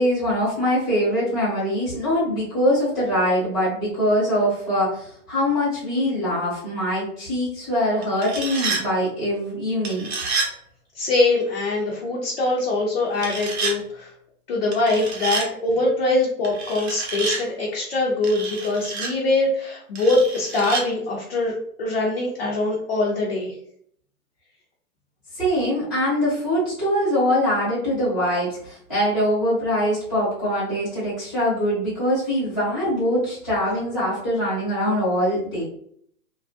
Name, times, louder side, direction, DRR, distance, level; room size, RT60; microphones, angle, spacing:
voice 1, 0.0-10.1 25.3-35.6, equal, ahead, -10 dB, 0.8 m, -23 dB
sound 1, 8.0-8.8 9.8-10.5 13.1-13.8 14.7-15.5 16.4-17.4 18.2-19.1 20.0-20.8, right 4 dB, 45° right, 0.8 m, -28 dB
voice 2, 11.0-14.1 14.5-23.5, left 2 dB, 40° left, -3 dB, 0.5 m, -23 dB
2.9 x 2.3 x 2.6 m, 0.64 s
hypercardioid pair, 175°, 44 cm